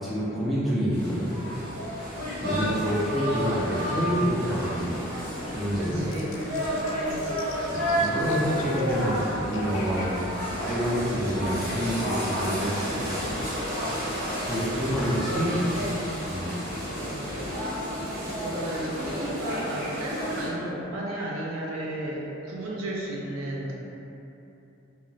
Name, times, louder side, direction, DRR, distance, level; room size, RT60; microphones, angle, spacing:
voice 1, 0.0-1.3 2.4-4.9 5.5-6.0 7.7-10.2 10.6-13.2 13.9-15.5 16.3-16.5, equal, ahead, -9 dB, 0.4 m, -28 dB
sound 1, 0.9-20.5, equal, 60° right, 1.1 m, -31 dB
voice 2, 2.4-2.8 5.8-7.5 15.1-16.2 16.9-17.3 18.4-23.7, right 1 dB, 90° right, -3 dB, 0.5 m, -34 dB
sound 2, 6.1-13.1, left 2 dB, 75° left, 0.3 m, -44 dB
2.2 x 2.1 x 3.8 m, 2.9 s
head